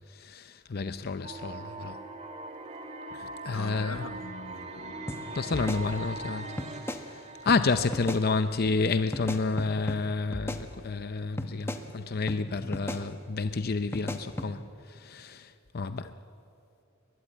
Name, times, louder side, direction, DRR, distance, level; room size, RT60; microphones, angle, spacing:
voice 1, 0.1-2.0 3.1-4.1 5.3-16.1, left 4 dB, 50° left, 0.6 m, -30 dB
sound 1, 1.2-9.2, right 2 dB, 35° right, 2.0 m, -42 dB
voice 2, 3.5-5.5 16.0-16.1, left 4 dB, 80° left, 0.9 m, -43 dB
sound 2, 5.1-5.2 5.5-6.3 6.6-7.0 7.5-7.6 7.9-8.2 9.1-10.0 10.3-11.1 11.4-11.8 12.3-12.4 12.7-13.0 13.9-14.5, left 1 dB, 10° left, 1.1 m, -36 dB
22.0 x 21.5 x 8.9 m
head